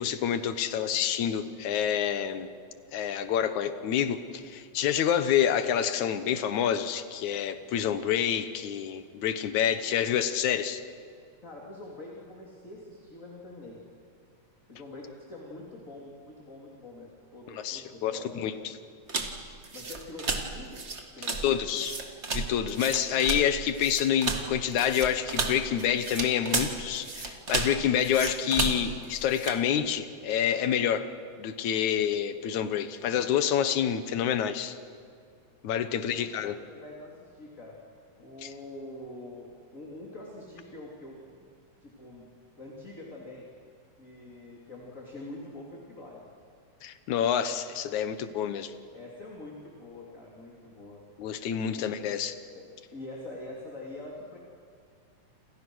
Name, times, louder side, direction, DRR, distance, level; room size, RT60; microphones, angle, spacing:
voice 1, 0.0-2.5 2.9-10.8 17.6-18.5 21.4-22.0 22.3-31.1 31.4-34.8 35.6-36.5 38.4-38.5 46.8-48.7 51.2-52.4, left 9 dB, 75° left, 11 dB, 2.5 m, -28 dB
voice 2, 11.4-13.8 14.7-18.6 19.7-20.8 21.1-21.9 35.9-37.8 38.2-41.4 41.8-42.2 42.6-43.4 44.0-46.3 48.9-51.0 51.8-51.9 52.5-52.6 52.9-54.4, left 2 dB, 25° left, -2 dB, 3.3 m, -45 dB
sound 1, 19.1-29.6, right 3 dB, 25° right, 1.6 m, -33 dB
28.5 x 27.5 x 6.3 m, 2.2 s
omnidirectional pair, 3.4 m